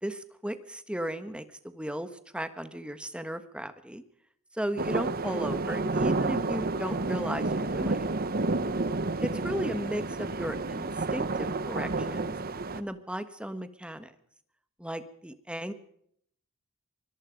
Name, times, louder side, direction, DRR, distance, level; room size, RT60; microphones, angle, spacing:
voice 1, 0.0-4.0 4.5-8.0 9.2-12.4 12.7-14.1 14.8-15.7, right 1 dB, 5° right, 11 dB, 1.3 m, -35 dB
sound 1, 4.8-12.8, right 3 dB, 40° right, 1.0 m, -30 dB
24.5 x 21.0 x 5.2 m, 0.68 s
head